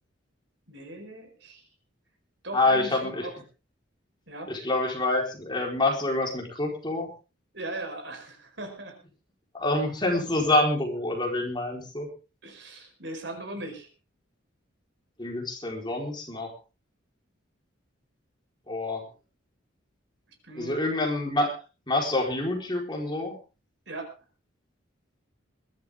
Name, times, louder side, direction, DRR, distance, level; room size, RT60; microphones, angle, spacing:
voice 1, 0.7-1.7 2.4-3.3 4.3-4.5 7.5-9.0 12.4-13.9 20.4-20.8 23.9-24.1, right 2 dB, 60° right, 6 dB, 4.9 m, -39 dB
voice 2, 2.5-3.3 4.5-7.1 9.5-12.1 15.2-16.5 18.7-19.0 20.5-21.5 21.9-23.4, left 2 dB, 25° left, 1 dB, 4.4 m, -27 dB
21.5 x 12.5 x 3.7 m, 0.33 s
head